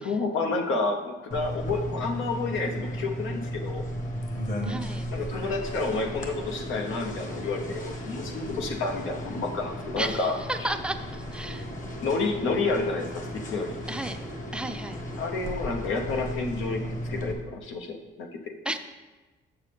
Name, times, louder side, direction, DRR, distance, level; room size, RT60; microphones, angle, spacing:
voice 1, 0.0-3.9 5.1-10.7 12.0-13.8 15.2-18.3, left 3 dB, 75° left, 4 dB, 0.9 m, -30 dB
sound 1, 1.3-17.3, equal, 40° left, 1.3 m, -35 dB
voice 2, 4.7-5.1 10.0-11.7 13.9-14.2 14.5-15.0 18.7-18.8, right 1 dB, 5° right, 7 dB, 0.5 m, -33 dB
7.0 x 6.7 x 3.4 m, 1.2 s
cardioid pair, 90°, 20 cm